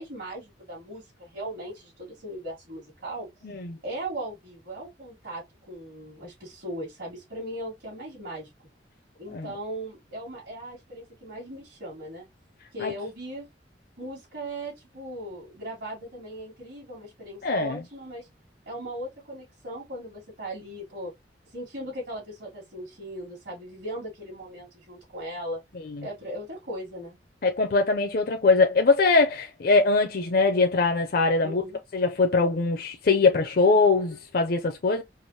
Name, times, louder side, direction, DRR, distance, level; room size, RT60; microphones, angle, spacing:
voice 1, 0.0-3.3 3.8-8.5 9.2-12.3 12.7-13.5 14.0-18.3 18.7-21.1 21.5-25.6 26.0-27.2 31.4-31.8, right 1 dB, 70° right, 2.5 m, -38 dB
voice 2, 3.4-3.8 9.3-9.5 12.8-12.9 17.4-17.8 26.0-26.1 27.4-31.6 31.9-35.0, left 3 dB, 55° left, 0.5 m, -22 dB
4.8 x 2.5 x 2.8 m
head